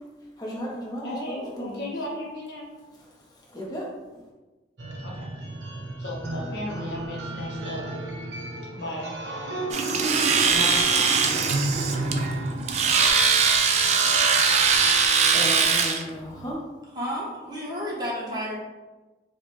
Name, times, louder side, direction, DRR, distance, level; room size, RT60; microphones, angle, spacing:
voice 1, 0.4-1.9 3.5-3.9 15.3-16.6, equal, 20° left, -3 dB, 0.7 m, -34 dB
voice 2, 1.0-2.7 5.0-5.3 6.0-7.8 8.7-9.7 10.4-11.2, left 1 dB, 65° left, -4 dB, 0.6 m, -35 dB
sound 1, 4.8-15.1, right 2 dB, 70° right, 0.6 m, -32 dB
Domestic sounds home sounds, 9.7-16.0, right 5 dB, 40° right, 0.3 m, -21 dB
voice 3, 16.9-18.6, equal, 20° right, -5 dB, 0.8 m, -31 dB
4.6 x 2.2 x 3.0 m, 1.2 s
head